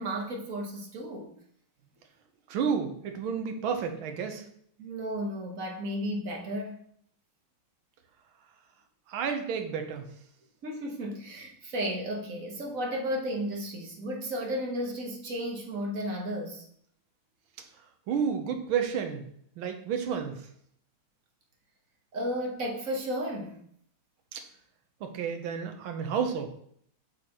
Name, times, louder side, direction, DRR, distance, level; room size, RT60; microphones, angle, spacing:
voice 1, 0.0-1.3 4.8-6.7 10.6-16.7 22.1-23.6, equal, 50° right, 1 dB, 1.2 m, -33 dB
voice 2, 2.5-4.4 9.1-10.1 18.1-19.2 19.6-20.5 24.3-24.4 25.0-26.5, right 7 dB, 85° right, 6 dB, 1.7 m, -31 dB
7.4 x 6.4 x 2.9 m, 0.66 s
omnidirectional pair, 2.2 m